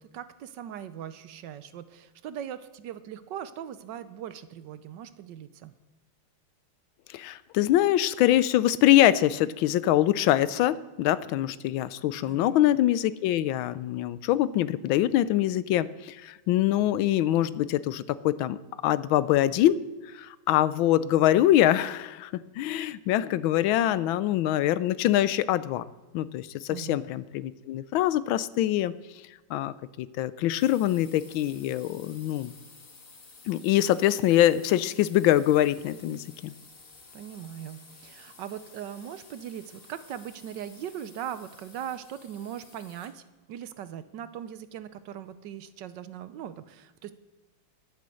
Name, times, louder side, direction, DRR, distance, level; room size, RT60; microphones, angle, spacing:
voice 1, 0.0-5.7 12.3-12.6 26.7-27.0 37.1-43.2 43.5-47.1, right 10 dB, 70° right, 13 dB, 1.2 m, -40 dB
voice 2, 7.1-18.6 18.8-19.8 20.1-25.8 26.1-28.9 29.5-32.5 33.5-36.5, left 13 dB, 80° left, 17 dB, 1.3 m, -24 dB
sound 1, 30.6-43.3, left 4 dB, 40° left, 1.9 m, -53 dB
11.0 x 9.4 x 7.7 m, 1.2 s
omnidirectional pair, 2.2 m